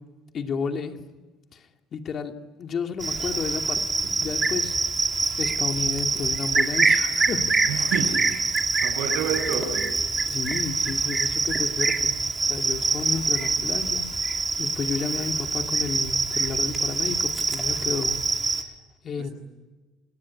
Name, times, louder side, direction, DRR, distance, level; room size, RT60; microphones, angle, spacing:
voice 1, 0.3-1.0 1.5-1.6 1.9-2.3 2.6-4.7 5.4-7.4 10.3-12.2 12.5-18.2 18.6-18.7 19.0-19.3, left 5 dB, 40° left, 5 dB, 2.4 m, -32 dB
Cricket, 3.0-18.6, right 3 dB, 20° right, 2.5 m, -25 dB
voice 2, 7.7-8.2 8.8-9.8, right 7 dB, 70° right, 3 dB, 7.8 m, -28 dB
29.0 x 19.0 x 9.8 m, 1.2 s
cardioid pair, 115°, 0 cm